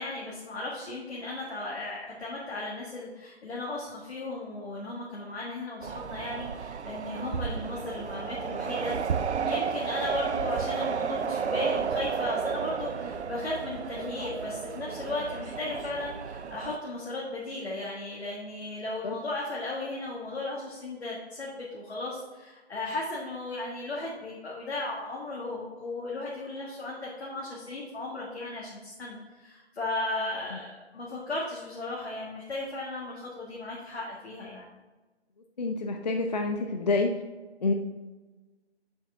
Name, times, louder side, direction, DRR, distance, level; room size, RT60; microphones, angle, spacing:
voice 1, 0.0-8.9 9.4-34.7, left 2 dB, 70° left, -4 dB, 1.5 m, -36 dB
sound 1, 5.8-16.8, right 6 dB, 90° right, 0.5 m, -32 dB
voice 2, 35.6-37.1 37.6-37.7, left 3 dB, 40° left, 4 dB, 0.4 m, -27 dB
7.2 x 4.8 x 3.5 m, 1.2 s
figure-of-eight pair, 150°, 33 cm